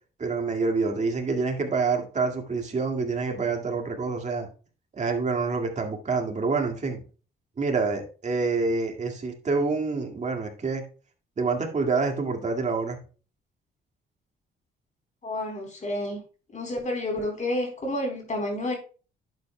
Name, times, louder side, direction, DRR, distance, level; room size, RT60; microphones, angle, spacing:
voice 1, 0.2-4.5 4.9-7.0 7.6-10.8 11.4-13.0, right 4 dB, 35° right, 3 dB, 2.1 m, -27 dB
voice 2, 15.2-16.2 16.5-18.8, left 1 dB, 40° left, 2 dB, 4.0 m, -30 dB
11.0 x 7.6 x 2.3 m, 0.37 s
cardioid pair, 90°, 20 cm